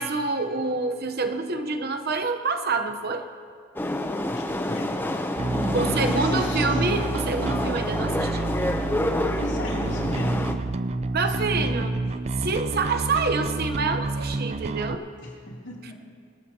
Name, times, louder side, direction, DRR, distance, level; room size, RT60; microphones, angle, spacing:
voice 1, 0.0-3.2 5.7-7.0 7.3-8.5 11.1-11.9 12.4-15.0, right 3 dB, 50° right, 7 dB, 0.9 m, -27 dB
sound 1, 3.8-10.5, left 1 dB, 10° left, 0.6 m, -28 dB
voice 2, 4.3-5.0 5.7-7.0 9.4-10.6 11.2-11.9 15.2-15.9, left 1 dB, 60° left, -3 dB, 3.1 m, -34 dB
Bass guitar, 5.4-15.0, right 3 dB, 30° right, 0.4 m, -29 dB
24.0 x 13.0 x 2.9 m, 2.4 s
head